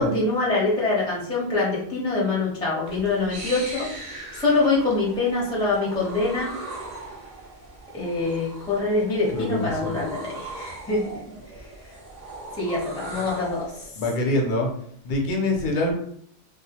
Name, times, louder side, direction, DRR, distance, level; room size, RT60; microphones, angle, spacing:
voice 1, 0.0-6.5 7.9-11.0 12.5-13.9, left 3 dB, 5° left, -6 dB, 0.5 m, -25 dB
sound 1, 2.9-13.9, right 2 dB, 50° right, 0.5 m, -39 dB
voice 2, 9.3-10.0 14.0-14.7 15.0-15.9, left 2 dB, 55° left, 1 dB, 0.6 m, -24 dB
2.3 x 2.1 x 2.7 m, 0.63 s
omnidirectional pair, 1.3 m